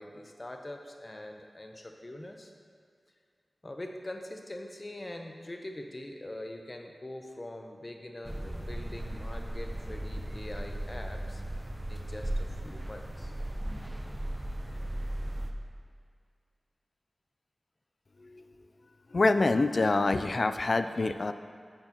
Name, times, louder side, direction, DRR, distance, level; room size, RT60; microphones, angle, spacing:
voice 1, 0.0-2.5 3.6-11.4 11.9-13.3, left 1 dB, 30° left, 4 dB, 0.7 m, -43 dB
sound 1, 8.2-15.5, right 1 dB, 15° right, 0.6 m, -36 dB
voice 2, 19.1-21.3, left 3 dB, 55° left, 10 dB, 0.3 m, -26 dB
9.6 x 6.6 x 3.0 m, 2.2 s
wide cardioid pair, 70°, 0 cm